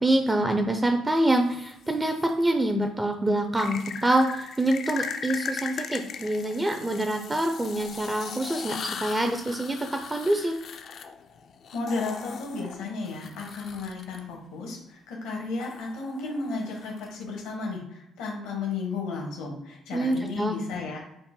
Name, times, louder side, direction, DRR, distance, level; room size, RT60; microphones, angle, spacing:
voice 1, 0.0-10.6 19.9-20.6, right 1 dB, 15° right, 4 dB, 0.4 m, -26 dB
sound 1, 1.3-2.3 3.6-14.2 15.6-17.4, left 6 dB, 60° left, 0.3 m, -38 dB
voice 2, 11.7-21.0, left 4 dB, 85° left, -1 dB, 1.0 m, -33 dB
4.1 x 2.1 x 3.7 m, 0.85 s
supercardioid pair, 80°, 0 cm